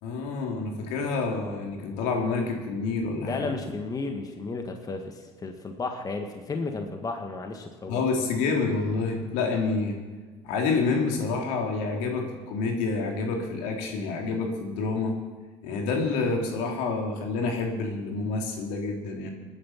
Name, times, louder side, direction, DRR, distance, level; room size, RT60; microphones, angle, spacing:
voice 1, 0.0-3.5 7.9-10.0 10.4-15.2 15.6-19.3, left 4 dB, 75° left, 2 dB, 3.1 m, -28 dB
voice 2, 3.2-8.0, left 3 dB, 25° left, 4 dB, 1.7 m, -33 dB
20.0 x 9.7 x 5.8 m, 1.4 s
supercardioid pair, 85°, 13 cm